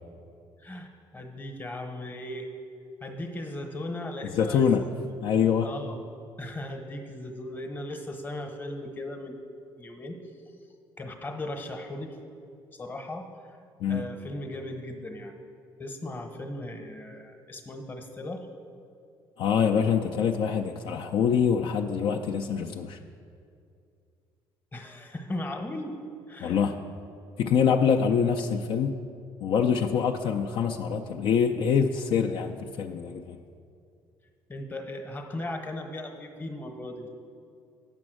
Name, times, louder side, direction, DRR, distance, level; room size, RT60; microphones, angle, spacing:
voice 1, 1.1-2.5 3.0-4.7 5.0-5.1 5.6-6.0 6.4-9.4 9.8-10.2 11.0-12.1 12.7-13.3 13.9-15.3 15.8-18.5 24.7-25.9 26.3-26.6 28.6-28.7 34.5-37.1, left 1 dB, 20° left, 5 dB, 0.9 m, -37 dB
voice 2, 4.3-4.9 5.2-5.7 13.8-14.1 19.4-23.0 26.4-26.8 27.4-28.9 29.4-33.4, left 7 dB, 65° left, 3 dB, 0.4 m, -25 dB
8.4 x 6.2 x 6.3 m, 2.4 s
cardioid pair, 120°, 9 cm